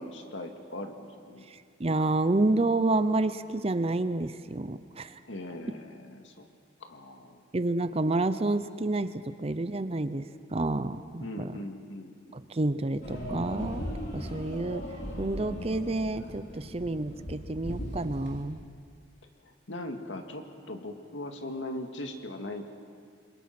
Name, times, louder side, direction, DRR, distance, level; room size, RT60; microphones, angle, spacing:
voice 1, 0.0-1.5 5.2-6.5 6.8-7.4 11.2-12.4 19.4-22.6, left 1 dB, 80° left, 4 dB, 2.1 m, -40 dB
voice 2, 1.5-5.2 7.5-11.5 12.3-13.8 14.1-14.9 15.2-18.6, right 2 dB, 30° right, 12 dB, 0.6 m, -29 dB
sound 1, 13.0-18.4, equal, 60° left, 3.9 m, -38 dB
28.0 x 22.5 x 6.0 m, 2.2 s
head